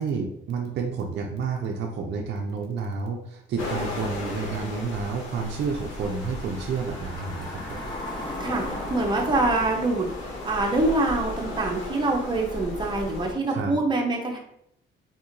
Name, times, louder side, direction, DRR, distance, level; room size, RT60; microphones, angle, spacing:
voice 1, 0.0-7.8 13.5-13.8, right 5 dB, 60° right, 1 dB, 0.5 m, -30 dB
sound 1, 3.6-13.3, left 2 dB, 85° left, 0.8 m, -36 dB
sound 2, 4.9-11.8, left 1 dB, 20° left, 1.0 m, -39 dB
voice 2, 8.4-14.4, right 2 dB, 25° right, 0 dB, 0.8 m, -25 dB
3.6 x 2.7 x 2.6 m, 0.73 s
cardioid pair, 90°, 20 cm